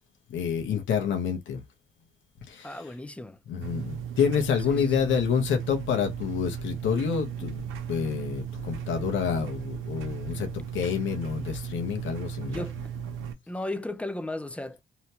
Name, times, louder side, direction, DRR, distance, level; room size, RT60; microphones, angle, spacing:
voice 1, 0.3-1.6 2.5-2.8 3.5-7.6 7.9-12.6, left 7 dB, 75° left, 0.9 m, -28 dB
voice 2, 2.6-3.4 4.7-5.1 12.5-12.8 13.5-14.8, left 1 dB, 5° left, 0.4 m, -35 dB
sound 1, 3.6-13.3, right 7 dB, 90° right, 0.6 m, -36 dB
2.8 x 2.2 x 2.8 m
cardioid pair, 90°, 20 cm